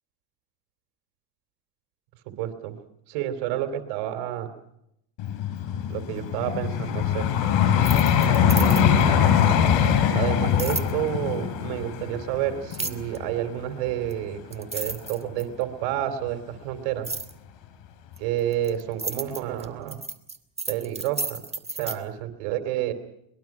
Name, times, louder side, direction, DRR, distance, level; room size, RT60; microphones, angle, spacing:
voice 1, 2.3-2.8 3.1-4.5 5.9-7.3 8.2-9.2 10.1-17.1 18.2-20.0 20.7-21.4 21.8-22.9, right 12 dB, 80° right, 8 dB, 3.1 m, -30 dB
Vehicle, 5.2-14.3 14.9-15.1, left 8 dB, 70° left, 3.6 m, -22 dB
sound 1, 7.7-9.1 10.6-10.9 12.7-13.2 14.1-14.2 14.5-15.6 17.0-17.3 18.2-22.0, right 3 dB, 15° right, 1.7 m, -32 dB
23.0 x 21.5 x 5.9 m, 0.77 s
supercardioid pair, 95°, 45 cm